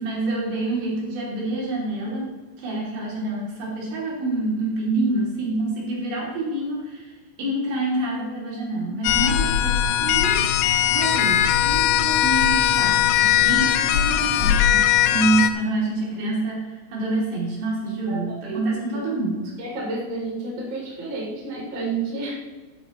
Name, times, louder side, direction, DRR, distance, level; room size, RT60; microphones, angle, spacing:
voice 1, 0.0-2.3 2.6-10.4 10.9-19.5, right 2 dB, 65° right, -4 dB, 4.9 m, -27 dB
sound 1, 9.0-15.5, left 11 dB, 85° left, 2.9 m, -19 dB
voice 2, 18.1-18.6 18.9-19.0 19.6-22.4, right 3 dB, 30° right, -4 dB, 3.4 m, -30 dB
13.0 x 11.5 x 3.1 m, 1.3 s
omnidirectional pair, 5.3 m